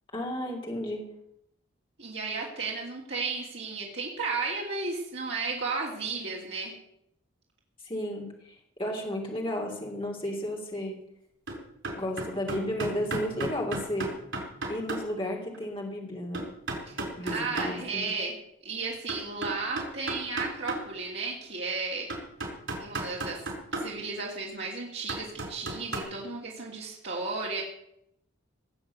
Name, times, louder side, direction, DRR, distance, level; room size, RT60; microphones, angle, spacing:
voice 1, 0.1-1.0 7.8-11.0 12.0-14.1 14.7-16.4 17.1-18.1, left 1 dB, 25° left, 0 dB, 3.1 m, -33 dB
voice 2, 2.0-6.7 16.9-22.1 22.8-23.4 23.7-27.6, right 4 dB, 55° right, -3 dB, 2.9 m, -34 dB
sound 1, 11.5-11.6 11.8-15.0 15.5-15.6 16.3-17.7 19.1-20.8 21.4-21.5 22.1-23.9 25.1-26.0, right 2 dB, 75° right, 4.4 m, -33 dB
18.5 x 7.5 x 8.2 m, 0.76 s
head